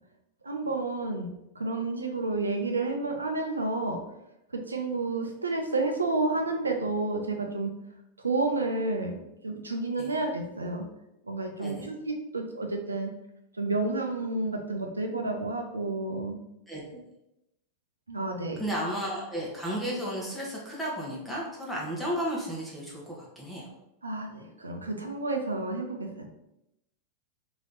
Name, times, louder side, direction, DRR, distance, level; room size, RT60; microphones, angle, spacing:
voice 1, 0.4-1.3 1.6-4.0 4.5-7.7 8.2-10.8 11.2-13.1 13.6-16.4 18.1-18.6 24.0-26.2, right 2 dB, 80° right, 3 dB, 0.6 m, -30 dB
voice 2, 16.7-17.0 18.6-23.6, equal, ahead, -5 dB, 1.0 m, -33 dB
3.2 x 2.9 x 3.9 m, 0.87 s
figure-of-eight pair, 90°, 0 cm